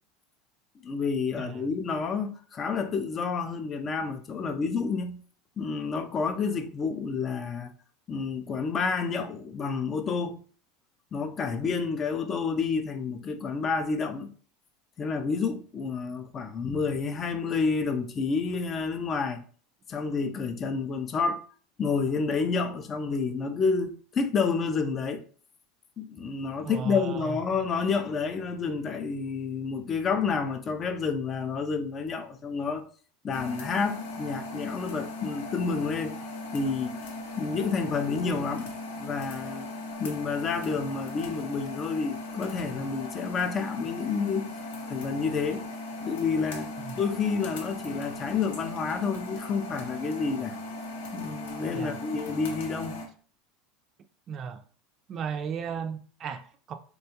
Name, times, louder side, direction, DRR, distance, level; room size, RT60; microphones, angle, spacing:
voice 1, 0.8-5.2 5.6-7.7 8.1-10.4 11.1-14.3 15.0-19.4 19.9-21.5 21.8-25.2 26.0-32.8 33.2-36.2 36.5-37.0 37.4-38.7 39.0-39.7 40.0-44.5 44.9-45.7 46.0-50.6 51.1-53.0, left 5 dB, 30° left, 0.4 m, -29 dB
voice 2, 26.6-27.4 46.8-47.0 51.7-52.0 54.3-54.6 55.1-56.7, right 6 dB, 35° right, 0.4 m, -35 dB
sound 1, 33.3-53.1, left 2 dB, 90° left, 0.7 m, -38 dB
3.6 x 2.3 x 2.7 m
supercardioid pair, 120°, 0 cm